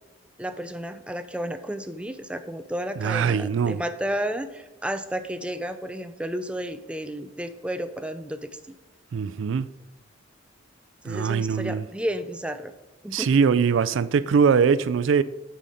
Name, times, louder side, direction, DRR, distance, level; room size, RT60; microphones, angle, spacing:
voice 1, 0.4-8.5 11.0-12.7 13.0-13.3, equal, 5° right, 0.5 m, -32 dB
voice 2, 3.0-3.8 9.1-9.7 11.1-11.8 13.1-15.2, right 6 dB, 85° right, 0.4 m, -22 dB
9.2 x 5.7 x 4.9 m
head